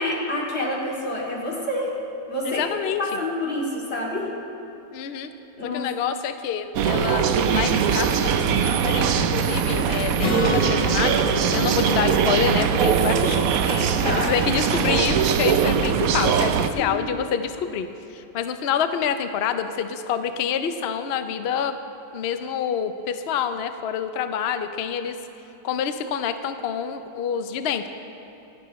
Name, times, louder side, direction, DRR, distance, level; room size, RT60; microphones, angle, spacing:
voice 1, 0.0-1.9 2.3-2.6 3.0-4.3 5.6-5.8 13.7-14.3 16.7-17.2, left 1 dB, 35° left, -4 dB, 2.8 m, -28 dB
voice 2, 2.4-3.2 4.9-5.3 5.6-13.4 14.1-21.8 22.1-25.2 25.6-27.9, left 8 dB, 80° left, 9 dB, 0.5 m, -27 dB
sound 1, 6.8-16.7, right 7 dB, 65° right, 0.9 m, -21 dB
Acoustic guitar, 10.2-13.9, left 3 dB, 50° left, 1.7 m, -31 dB
27.0 x 10.5 x 3.1 m, 3.0 s
omnidirectional pair, 2.0 m